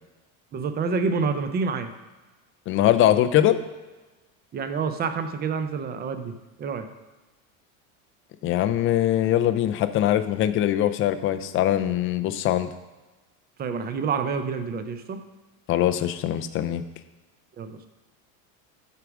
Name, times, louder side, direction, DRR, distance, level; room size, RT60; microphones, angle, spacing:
voice 1, 0.5-1.9 4.5-6.3 6.6-6.8 13.6-15.2 17.6-17.9, right 5 dB, 25° right, 8 dB, 0.6 m, -28 dB
voice 2, 2.7-3.6 8.4-12.7 15.7-16.8, left 12 dB, 30° left, 11 dB, 0.4 m, -22 dB
8.2 x 4.8 x 6.0 m, 1.2 s
supercardioid pair, 135°, 42 cm